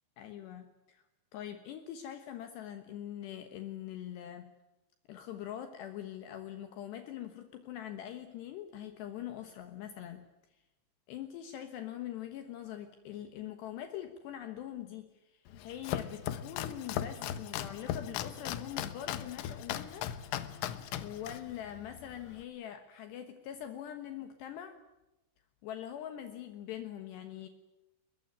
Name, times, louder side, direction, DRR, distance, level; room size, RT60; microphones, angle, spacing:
voice 1, 0.2-1.0 1.3-4.5 5.1-10.3 11.1-20.1 21.0-24.8 25.6-27.5, left 11 dB, 70° left, 8 dB, 3.2 m, -43 dB
Domestic sounds home sounds, 15.5-22.4, left 11 dB, 90° left, 3.8 m, -38 dB
22.5 x 21.5 x 9.5 m, 0.98 s
omnidirectional pair, 5.5 m